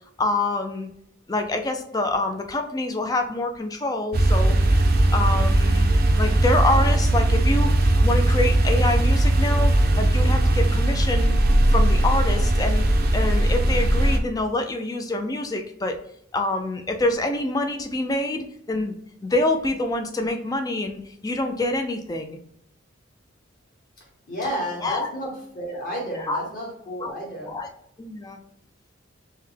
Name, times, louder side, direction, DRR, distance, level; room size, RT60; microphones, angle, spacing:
voice 1, 0.2-0.9 1.3-4.6 5.1-5.9 6.2-7.7 8.0-11.3 11.7-12.9 13.1-16.0 16.3-18.9 19.2-22.4 24.8-25.1 26.1-26.4 27.0-27.1 27.4-27.7 28.0-28.4, left 2 dB, 20° left, 5 dB, 0.3 m, -26 dB
sound 1, 4.1-14.2, right 1 dB, 50° right, 0.5 m, -19 dB
voice 2, 24.0-27.5, equal, 45° left, -2 dB, 1.4 m, -32 dB
5.6 x 2.1 x 3.2 m, 0.73 s
head